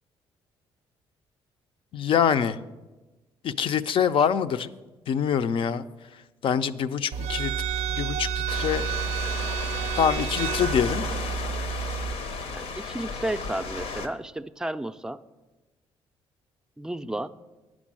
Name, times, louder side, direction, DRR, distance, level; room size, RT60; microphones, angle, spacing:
voice 1, 1.9-2.6 3.4-4.7 5.1-5.8 6.4-7.5 7.9-8.9 9.9-11.0, left 8 dB, 60° left, 12 dB, 0.5 m, -25 dB
sound 1, 7.1-12.1, right 7 dB, 85° right, 0.5 m, -30 dB
sound 2, 8.5-14.1, left 4 dB, 80° left, 0.9 m, -34 dB
voice 2, 12.5-15.2 16.8-17.3, right 1 dB, 5° right, 10 dB, 0.4 m, -32 dB
9.4 x 6.2 x 7.4 m, 1.2 s
cardioid pair, 80°, 10 cm